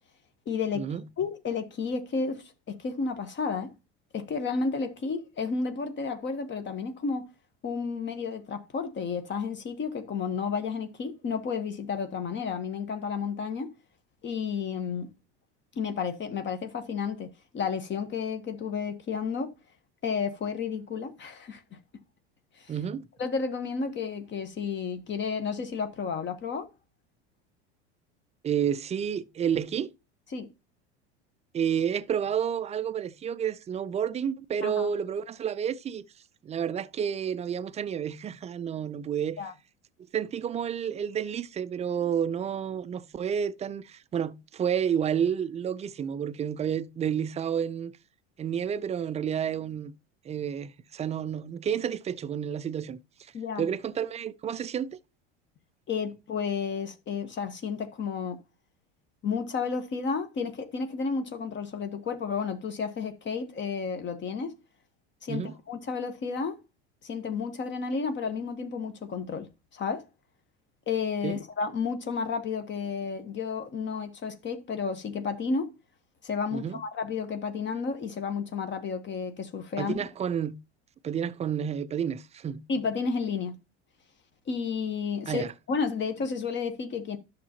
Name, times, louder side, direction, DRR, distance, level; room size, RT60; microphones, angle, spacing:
voice 1, 0.5-0.9 1.2-3.7 4.1-7.3 7.6-13.7 14.2-15.1 15.7-19.5 20.0-21.8 22.5-22.7 23.2-26.7 30.3-30.5 34.6-34.9 39.4-39.5 53.3-53.7 55.9-58.4 59.2-64.5 65.2-66.6 67.0-70.0 70.9-75.7 76.2-80.0 82.7-83.6 84.5-87.2, left 5 dB, 35° left, 1.0 m, -32 dB
voice 2, 22.7-23.1 28.4-29.9 31.5-36.1 36.4-39.4 40.1-47.9 48.4-49.9 50.2-53.0 53.6-55.0 65.3-65.5 71.2-71.4 76.5-76.8 79.8-80.6 81.0-82.6 85.3-85.5, right 8 dB, 20° right, 0.4 m, -30 dB
11.0 x 6.6 x 2.8 m
hypercardioid pair, 90°, 32 cm